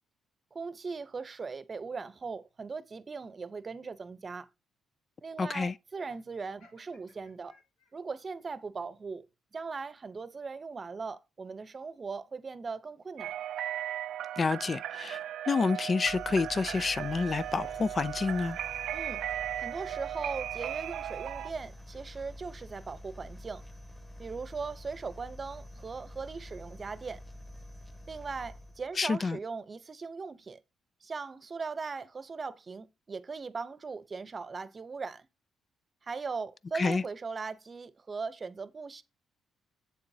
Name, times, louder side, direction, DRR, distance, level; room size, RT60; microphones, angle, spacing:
voice 1, 0.5-4.5 5.2-7.5 7.9-9.3 9.5-13.3 18.9-19.2 19.6-23.6 24.2-27.2 28.1-30.6 31.0-35.3 36.0-39.0, right 4 dB, 40° right, 0.7 m, -39 dB
voice 2, 5.4-5.7 14.4-15.2 15.5-18.6 29.0-29.4 36.8-37.0, left 4 dB, 40° left, 0.3 m, -28 dB
Laughter, 5.9-8.2, left 3 dB, 90° left, 5.2 m, -63 dB
sound 1, 13.2-21.5, right 11 dB, 75° right, 0.3 m, -37 dB
sound 2, 16.0-29.0, left 1 dB, 5° left, 1.2 m, -48 dB
7.7 x 6.9 x 2.8 m
supercardioid pair, 70°, 0 cm